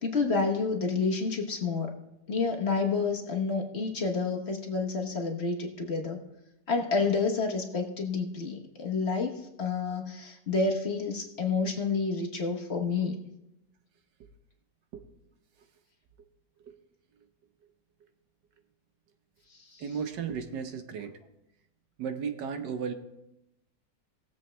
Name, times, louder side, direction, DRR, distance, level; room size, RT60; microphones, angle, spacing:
voice 1, 0.0-1.9 2.3-6.2 6.7-13.2 19.7-19.8, left 4 dB, 40° left, 2 dB, 1.2 m, -29 dB
voice 2, 19.8-21.1 22.0-22.9, right 6 dB, 75° right, 7 dB, 1.5 m, -34 dB
19.0 x 7.5 x 3.3 m, 0.88 s
omnidirectional pair, 1.9 m